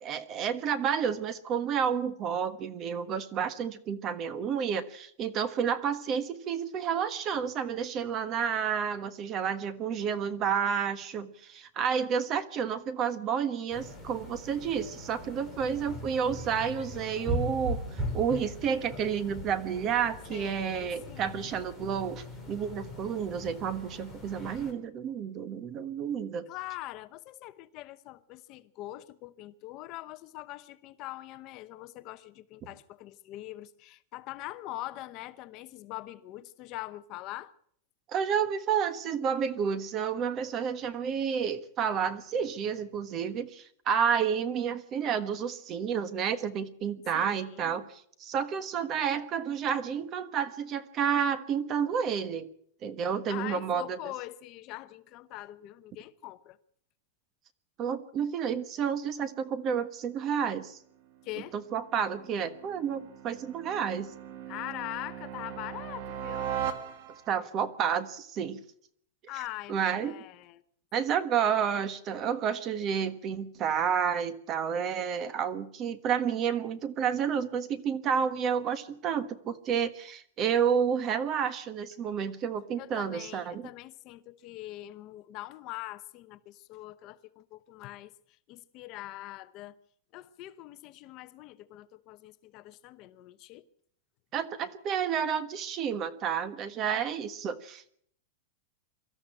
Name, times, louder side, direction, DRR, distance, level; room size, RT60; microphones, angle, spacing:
voice 1, 0.0-26.4 38.1-52.5 52.8-54.0 57.8-60.8 61.7-64.1 67.3-68.6 69.7-70.2 70.9-83.7 94.3-97.9, right 7 dB, 25° right, 1.3 m, -30 dB
sound 1, 13.7-24.7, equal, 5° right, 3.6 m, -39 dB
voice 2, 20.3-21.4 26.5-37.5 47.1-47.9 53.3-56.6 61.2-61.5 64.5-66.5 69.3-70.6 82.8-88.1 88.5-89.8 90.1-93.6, left 16 dB, 35° left, 0.8 m, -43 dB
sound 2, 61.0-67.5, right 9 dB, 50° right, 2.3 m, -39 dB
24.0 x 13.5 x 8.8 m
supercardioid pair, 170°, 0 cm